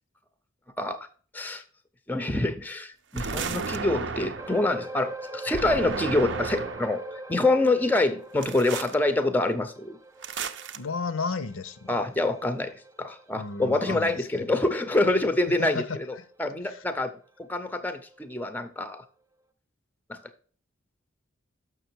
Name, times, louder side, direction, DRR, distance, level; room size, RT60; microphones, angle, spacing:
voice 1, 0.8-1.1 1.3-1.6 2.1-10.0 11.9-17.2 17.5-19.0 20.1-20.2, left 2 dB, 10° left, 0.5 m, -26 dB
sound 1, 3.1-4.6 5.5-7.0 8.4-9.0 10.2-10.8, right 5 dB, 55° right, 0.6 m, -33 dB
sound 2, 4.4-17.1 17.4-17.6 18.1-18.2, right 2 dB, 15° right, 0.8 m, -42 dB
voice 2, 10.7-12.0 13.3-14.5 15.6-16.2 16.7-16.8, left 4 dB, 75° left, 0.6 m, -33 dB
6.9 x 6.0 x 4.5 m
head